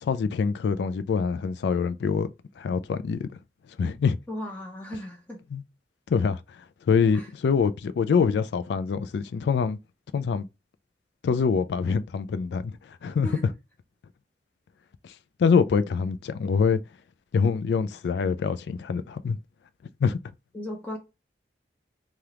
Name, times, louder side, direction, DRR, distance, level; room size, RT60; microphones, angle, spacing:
voice 1, 0.0-2.3 2.6-3.3 3.8-4.2 5.5-5.6 6.1-6.4 6.9-9.8 10.1-10.5 11.2-12.7 13.0-13.3 15.4-16.8 17.3-19.4 20.0-20.2, left 5 dB, 75° left, 0.3 m, -24 dB
voice 2, 4.3-5.4 7.1-7.3 13.2-13.4 20.5-21.0, left 1 dB, 10° left, 0.6 m, -36 dB
3.3 x 2.4 x 2.8 m
head